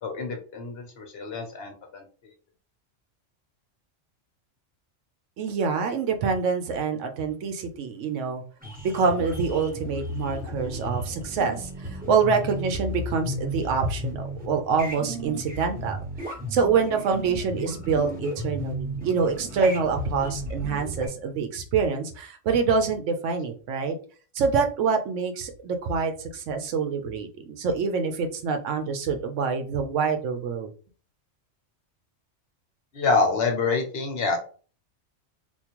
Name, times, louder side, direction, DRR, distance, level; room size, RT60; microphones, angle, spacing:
voice 1, 0.0-2.0 32.9-34.4, left 4 dB, 60° left, 3 dB, 0.9 m, -26 dB
voice 2, 5.4-8.4 8.8-16.1 16.5-24.0 24.3-30.7, right 5 dB, 80° right, 6 dB, 1.0 m, -26 dB
sound 1, 8.6-21.1, equal, 10° right, 0.9 m, -34 dB
3.6 x 2.4 x 2.9 m, 0.40 s
omnidirectional pair, 1.3 m